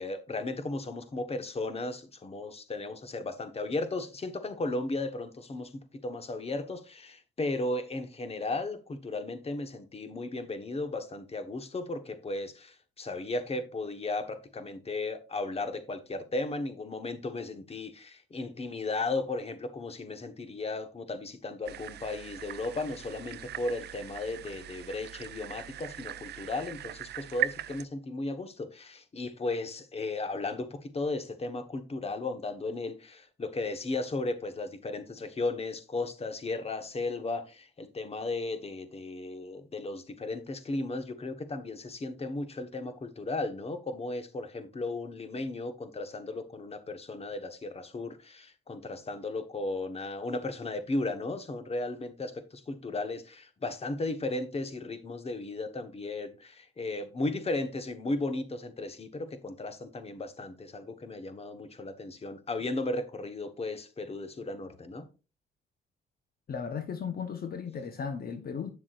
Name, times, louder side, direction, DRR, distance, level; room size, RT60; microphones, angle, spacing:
voice 1, 0.0-5.7 6.0-65.1, left 2 dB, 30° left, 1.3 m, -35 dB
sound 1, 21.7-27.9, right 11 dB, 55° right, 0.5 m, -39 dB
voice 2, 66.5-68.7, left 6 dB, 50° left, 1.0 m, -36 dB
8.6 x 7.2 x 2.5 m
cardioid pair, 90°, 20 cm